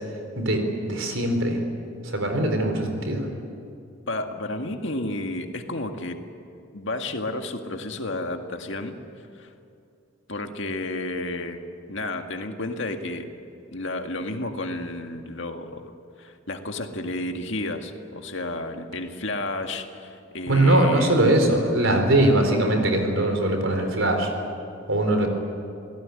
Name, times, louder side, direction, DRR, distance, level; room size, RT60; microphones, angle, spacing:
voice 1, 0.4-1.6 2.0-3.3 20.5-24.3 24.9-25.3, right 1 dB, 65° right, 5 dB, 4.1 m, -21 dB
voice 2, 4.1-6.2 6.7-9.0 9.4-9.5 10.3-11.6 11.9-13.3 13.7-15.9 16.2-21.2, left 2 dB, 60° left, 4 dB, 2.0 m, -31 dB
28.0 x 17.5 x 9.9 m, 2.5 s
head